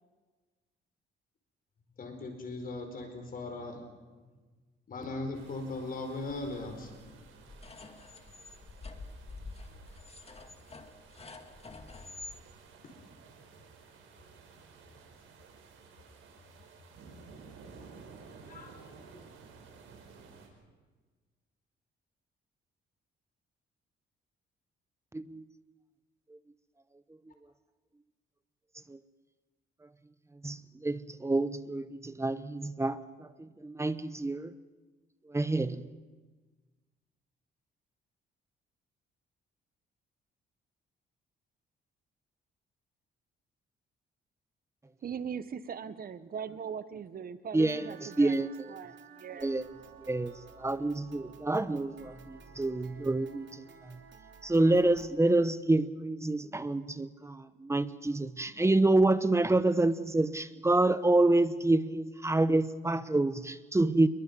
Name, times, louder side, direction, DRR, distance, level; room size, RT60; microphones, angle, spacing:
voice 1, 2.0-3.8 4.9-6.9 18.4-19.2, left 2 dB, 45° left, 4.7 m, -39 dB
sound 1, 5.3-20.5, right 5 dB, 85° right, 5.1 m, -54 dB
sound 2, 7.5-12.4, left 3 dB, 30° left, 2.2 m, -47 dB
voice 2, 30.4-34.5 35.3-35.8 47.5-47.9 48.1-48.5 49.4-49.6 50.0-53.6 53.9-54.0 54.4-64.1, right 2 dB, 15° right, 1.0 m, -28 dB
voice 3, 45.0-48.4 48.7-49.5, right 7 dB, 45° right, 1.2 m, -40 dB
sound 3, 47.6-55.1, right 6 dB, 65° right, 3.0 m, -53 dB
28.0 x 22.5 x 5.4 m
cardioid pair, 90°, 20 cm